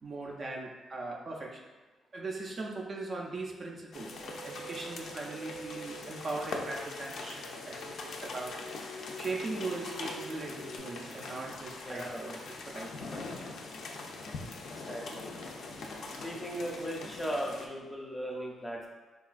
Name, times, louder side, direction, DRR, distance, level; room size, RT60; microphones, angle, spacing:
voice 1, 0.0-1.6 2.1-8.7 9.2-13.3 16.0-16.2, right 3 dB, 40° right, -1 dB, 0.4 m, -40 dB
sound 1, 3.9-17.7, left 3 dB, 65° left, 0.3 m, -42 dB
sound 2, 4.1-10.8, equal, 85° right, 0.7 m, -47 dB
voice 2, 11.8-12.4 14.8-15.3 16.2-18.9, equal, 10° left, -1 dB, 0.5 m, -37 dB
3.7 x 2.3 x 2.4 m, 1.3 s
cardioid pair, 110°, 0 cm